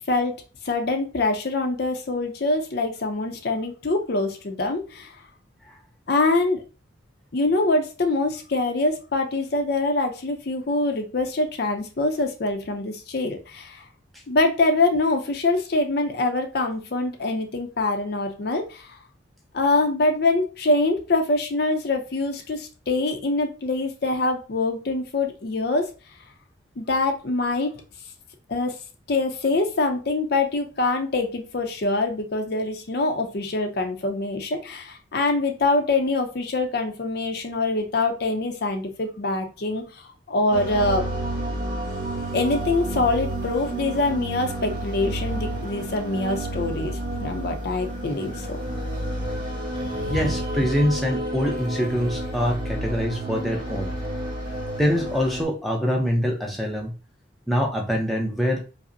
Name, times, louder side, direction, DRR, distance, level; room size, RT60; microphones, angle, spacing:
voice 1, 0.6-5.1 6.1-6.6 7.3-13.8 14.3-19.0 19.5-25.9 26.8-27.7 28.5-28.8 29.1-40.0 40.3-41.1 42.3-48.5 49.8-50.2, left 2 dB, 55° left, 5 dB, 0.5 m, -24 dB
sound 1, 40.5-55.5, right 1 dB, 25° right, 1.1 m, -30 dB
voice 2, 50.1-53.9 54.8-56.9 57.5-58.6, equal, ahead, -1 dB, 0.5 m, -24 dB
4.9 x 2.0 x 2.6 m, 0.33 s
head